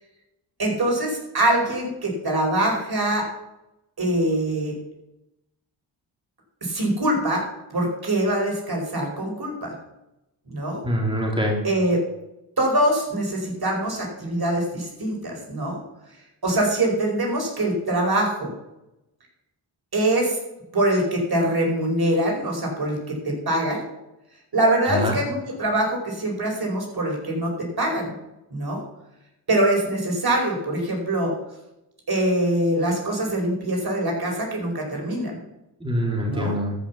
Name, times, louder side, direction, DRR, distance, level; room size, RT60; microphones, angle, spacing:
voice 1, 0.6-3.3 4.0-4.7 6.6-7.4 7.7-9.7 10.5-10.8 11.6-12.0 12.6-15.8 16.4-18.5 19.9-20.4 20.7-23.8 24.5-28.1 28.5-28.8 29.5-31.4 32.1-35.4 36.3-36.5, right 1 dB, 50° right, 0 dB, 5.0 m, -23 dB
voice 2, 10.8-11.6 24.8-25.2 35.8-36.7, equal, 10° right, -1 dB, 3.4 m, -24 dB
13.0 x 5.9 x 7.1 m, 0.90 s
supercardioid pair, 40°, 49 cm